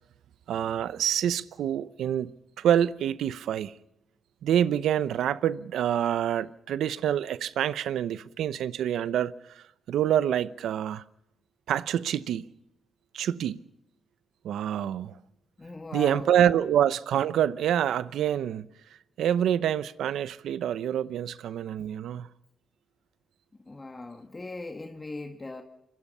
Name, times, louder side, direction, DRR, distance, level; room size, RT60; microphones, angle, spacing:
voice 1, 0.5-2.3 2.6-3.7 4.4-11.0 11.7-12.4 13.1-13.6 14.4-15.1 15.9-18.7 19.2-22.3, right 10 dB, 90° right, 0.7 m, -26 dB
voice 2, 15.6-16.3 23.6-25.6, left 2 dB, 30° left, 1.7 m, -39 dB
25.5 x 22.5 x 5.5 m
cardioid pair, 75°, 0 cm